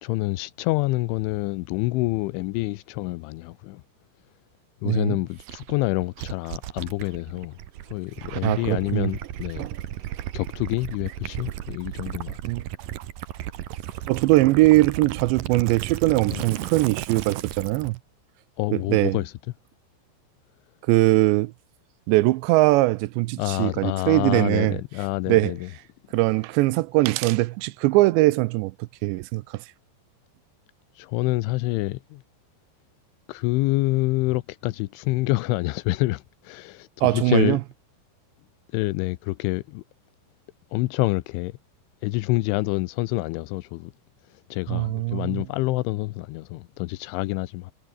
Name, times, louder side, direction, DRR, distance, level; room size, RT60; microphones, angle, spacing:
voice 1, 0.0-3.8 4.8-7.6 7.9-9.7 10.3-12.4 16.3-16.4 18.6-19.3 23.4-25.7 31.0-32.2 33.3-37.6 38.7-39.8 40.7-41.5 42.0-43.9 44.5-47.7, left 20 dB, 85° left, 3.2 m, -27 dB
voice 2, 4.9-5.2 8.3-9.1 9.6-9.7 12.4-12.6 14.1-18.0 18.7-19.2 20.9-21.5 22.1-24.8 25.3-25.5 26.1-28.7 29.0-29.6 37.0-37.6 44.7-45.4, right 20 dB, 80° right, 2.7 m, -21 dB
Gurgling / Liquid, 5.4-18.0, right 13 dB, 65° right, 2.3 m, -35 dB
omnidirectional pair, 5.4 m